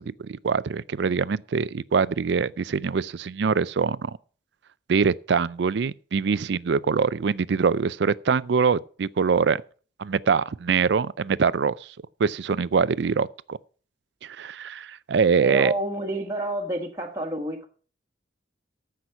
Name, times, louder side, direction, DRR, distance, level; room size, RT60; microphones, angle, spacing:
voice 1, 0.0-4.2 4.9-9.6 10.0-11.7 12.2-13.6 14.2-15.7, right 5 dB, 65° right, 0.4 m, -24 dB
voice 2, 15.4-17.7, right 1 dB, 15° right, 1.3 m, -29 dB
14.0 x 5.8 x 5.8 m
head